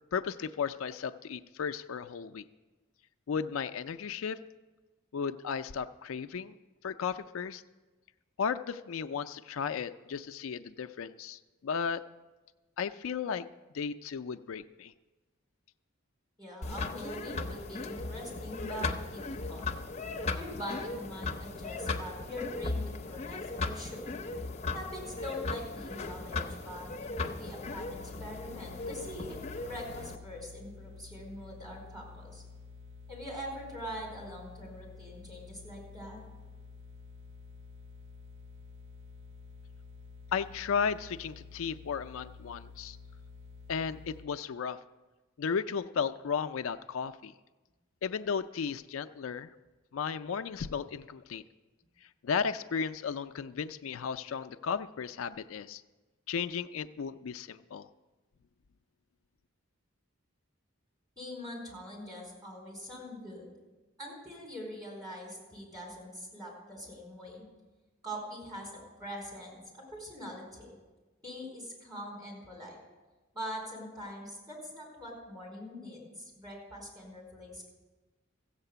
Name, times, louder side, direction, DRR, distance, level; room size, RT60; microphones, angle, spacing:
voice 1, 0.1-2.4 3.3-4.4 5.1-6.5 6.8-7.6 8.4-12.0 12.8-13.4 13.7-14.9 40.3-43.0 43.7-44.8 45.4-47.3 48.0-49.5 49.9-51.4 52.2-55.8 56.3-57.9, left 6 dB, 75° left, 11 dB, 0.4 m, -34 dB
voice 2, 16.4-19.2 19.5-19.7 20.3-24.0 24.7-32.4 33.1-36.2 61.2-63.4 64.0-67.4 68.0-70.7 71.2-72.8 73.3-77.7, equal, 20° right, -2 dB, 4.4 m, -43 dB
sound 1, 16.6-30.2, left 3 dB, 30° left, 0.7 m, -37 dB
sound 2, 27.6-44.3, left 4 dB, 60° right, 0.5 m, -50 dB
15.0 x 8.1 x 6.8 m, 1.2 s
head